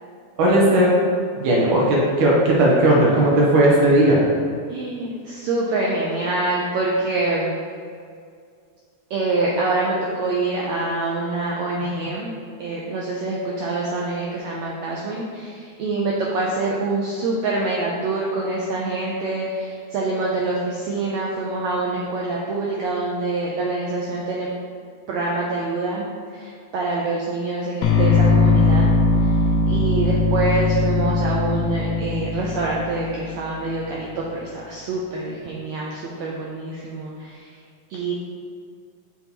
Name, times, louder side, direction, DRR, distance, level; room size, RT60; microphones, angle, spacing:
voice 1, 0.4-0.9 1.4-4.2, right 1 dB, 70° right, -4 dB, 2.5 m, -16 dB
voice 2, 4.7-7.5 9.1-12.3 12.6-24.5 25.1-28.9 29.2-29.3 29.7-37.5 37.9-38.1, right 2 dB, 85° right, -3 dB, 1.6 m, -25 dB
sound 1, 27.8-33.8, left 3 dB, 80° left, 1.5 m, -20 dB
7.8 x 5.8 x 3.0 m, 2.2 s
omnidirectional pair, 4.0 m